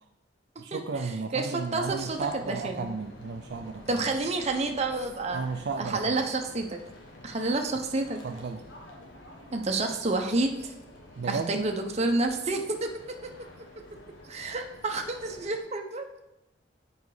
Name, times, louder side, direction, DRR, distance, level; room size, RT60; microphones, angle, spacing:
voice 1, 0.6-4.0 5.3-6.2 8.2-8.6 11.2-11.6, right 4 dB, 60° right, 5 dB, 0.4 m, -34 dB
voice 2, 1.3-2.2 2.5-2.9 3.9-5.4 5.8-6.8 7.2-8.2 9.5-10.7 11.3-12.9 14.3-16.1, right 2 dB, 35° right, 4 dB, 0.8 m, -29 dB
sound 1, 1.7-15.6, left 1 dB, 85° left, 1.5 m, -50 dB
7.2 x 5.0 x 4.8 m, 0.95 s
head